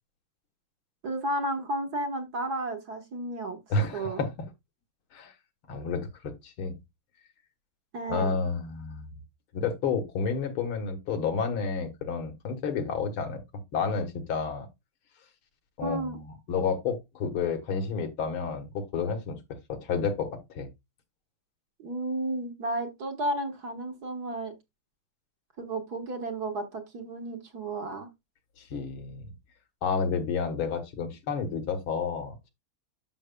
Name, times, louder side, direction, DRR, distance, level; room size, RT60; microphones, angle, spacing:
voice 1, 1.0-3.6 3.9-4.2 7.9-8.4 15.8-16.2 21.8-24.5 25.6-28.1, right 1 dB, 50° right, 1.8 m, -32 dB
voice 2, 3.7-4.3 5.1-5.3 5.7-6.7 8.1-9.1 9.5-13.4 13.7-14.7 15.8-19.4 19.7-20.7 28.6-29.3 29.8-32.3, left 5 dB, 75° left, 2.2 m, -30 dB
12.0 x 6.1 x 2.2 m
omnidirectional pair, 2.3 m